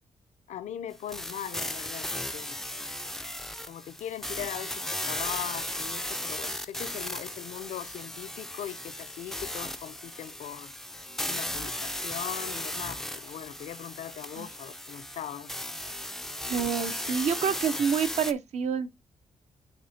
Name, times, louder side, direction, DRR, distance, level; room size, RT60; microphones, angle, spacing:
voice 1, 0.5-2.6 3.6-10.7 11.2-15.6, left 10 dB, 80° left, 0.5 m, -40 dB
sound 1, 1.1-18.3, left 1 dB, 5° left, 0.3 m, -36 dB
voice 2, 16.5-18.9, right 7 dB, 70° right, 0.7 m, -28 dB
9.7 x 3.5 x 2.7 m
wide cardioid pair, 165°, 12 cm